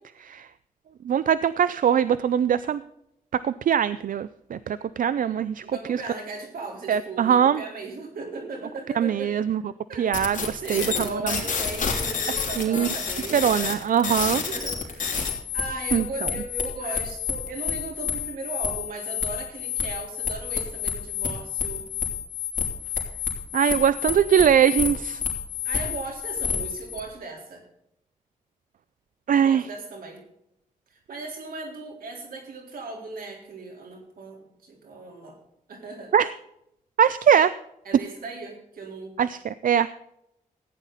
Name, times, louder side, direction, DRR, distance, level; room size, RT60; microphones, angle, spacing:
voice 1, 1.0-2.8 3.3-6.0 6.9-7.6 9.0-9.6 10.0-11.4 12.6-12.9 13.3-14.4 15.9-16.3 23.5-25.2 29.3-29.7 36.1-36.3 37.0-37.5 39.2-39.9, right 8 dB, 70° right, 16 dB, 0.4 m, -22 dB
voice 2, 5.6-9.3 9.9-13.7 14.4-15.2 15.5-21.9 25.6-27.6 29.3-30.2 30.9-35.4 35.7-36.1 37.9-39.1, right 3 dB, 85° right, 0 dB, 3.8 m, -37 dB
sound 1, 10.1-27.0, left 7 dB, 60° left, 3.2 m, -29 dB
15.0 x 9.9 x 4.0 m, 0.79 s
cardioid pair, 90°, 15 cm